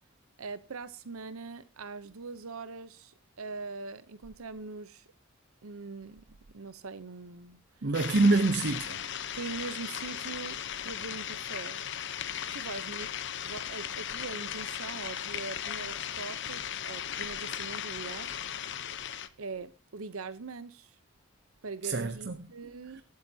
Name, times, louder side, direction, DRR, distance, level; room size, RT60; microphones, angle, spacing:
voice 1, 0.4-5.0 5.6-6.2 6.5-7.6 9.3-10.6 10.8-11.8 12.5-13.1 13.4-18.7 19.4-19.7 19.9-21.0 21.6-23.0, right 4 dB, 85° right, 0.8 m, -42 dB
voice 2, 7.8-9.0 21.8-22.4 22.9-23.0, right 2 dB, 55° right, 0.7 m, -26 dB
sound 1, 7.9-19.3, left 9 dB, 55° left, 0.8 m, -37 dB
23.5 x 8.6 x 2.8 m
head